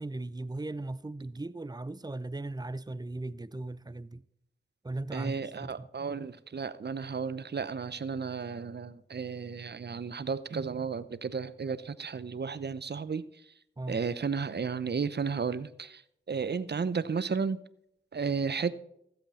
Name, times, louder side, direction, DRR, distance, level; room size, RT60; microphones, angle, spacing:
voice 1, 0.0-4.2 4.8-5.9 13.8-14.0, right 2 dB, 20° right, 0.6 m, -38 dB
voice 2, 5.1-13.3 13.9-16.0 16.3-17.6 18.1-18.7, right 5 dB, 55° right, 0.7 m, -33 dB
14.5 x 8.0 x 4.2 m
cardioid pair, 40°, 20 cm